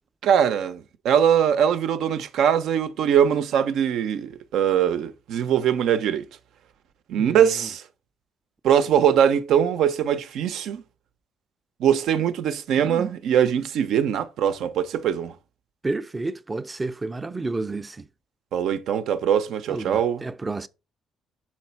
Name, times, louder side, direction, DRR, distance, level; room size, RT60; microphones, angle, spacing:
voice 1, 0.2-6.3 7.1-7.8 8.6-10.8 11.8-15.3 18.5-20.2, right 9 dB, 80° right, 0.7 m, -22 dB
voice 2, 7.1-7.5 12.8-13.1 15.8-18.1 19.7-20.7, right 3 dB, 20° right, 0.4 m, -31 dB
6.4 x 4.3 x 4.4 m
cardioid pair, 120°, 0 cm